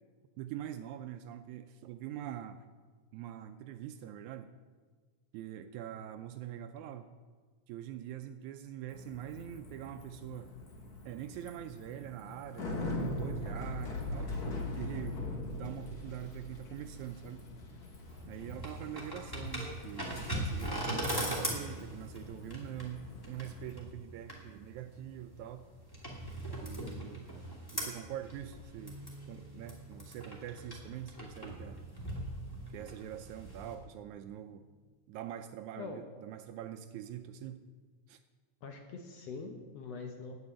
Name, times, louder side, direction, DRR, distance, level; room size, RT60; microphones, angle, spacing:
voice 1, 0.4-2.6 3.1-4.5 5.3-7.1 7.7-10.5 11.0-15.2 15.5-17.4 18.3-25.7 26.6-27.2 27.7-29.0 29.3-31.8 32.7-34.6 35.1-37.6 38.1-38.2, right 11 dB, 80° right, 9 dB, 1.8 m, -44 dB
Bicycle, 8.9-23.7, left 2 dB, 45° left, 1.3 m, -42 dB
sound 1, 18.0-33.7, right 1 dB, 10° left, 2.0 m, -40 dB
voice 2, 26.7-27.1 35.8-36.0 38.6-40.4, left 4 dB, 65° left, 4 dB, 1.7 m, -44 dB
Bass guitar, 28.6-34.8, right 1 dB, 15° right, 1.1 m, -56 dB
11.0 x 7.0 x 8.7 m, 1.5 s
omnidirectional pair, 3.7 m